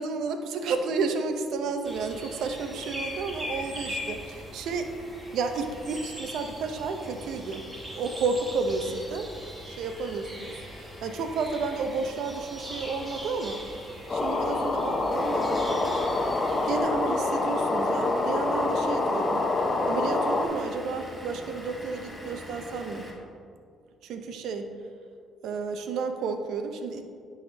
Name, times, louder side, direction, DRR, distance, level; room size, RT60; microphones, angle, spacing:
voice 1, 0.0-4.9 5.3-7.6 7.9-9.3 9.7-13.6 14.1-16.0 16.7-19.4 19.9-23.1 24.0-24.7 25.4-27.0, right 4 dB, 75° right, 6 dB, 0.6 m, -31 dB
sound 1, 1.8-16.8, equal, 15° right, 1.5 m, -41 dB
sound 2, 14.1-20.5, left 2 dB, 35° left, 0.7 m, -26 dB
Vehicle / Engine, 15.1-23.1, left 1 dB, ahead, 1.4 m, -42 dB
10.5 x 3.6 x 3.3 m, 2.2 s
supercardioid pair, 70°, 0 cm